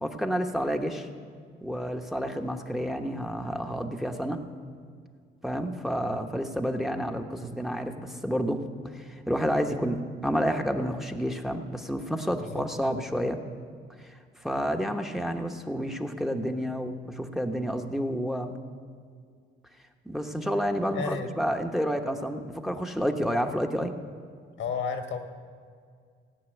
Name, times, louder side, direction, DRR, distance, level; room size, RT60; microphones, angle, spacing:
voice 1, 0.0-1.1 1.6-4.4 5.4-8.6 8.9-13.4 14.0-18.6 20.0-23.9, equal, ahead, 4 dB, 1.0 m, -30 dB
voice 2, 20.9-21.3 24.6-25.2, left 6 dB, 80° left, 5 dB, 1.7 m, -31 dB
16.0 x 6.1 x 9.2 m, 2.1 s
cardioid pair, 90°, 20 cm